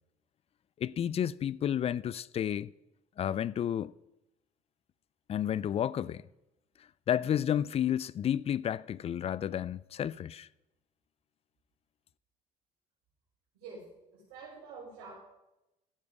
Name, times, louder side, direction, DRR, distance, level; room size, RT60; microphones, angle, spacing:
voice 1, 0.8-2.7 3.2-3.9 5.3-6.2 7.1-10.5, left 10 dB, 40° left, 0.4 m, -31 dB
voice 2, 14.1-15.1, right 4 dB, 85° right, 4.1 m, -47 dB
14.5 x 7.0 x 4.7 m
supercardioid pair, 80°, 16 cm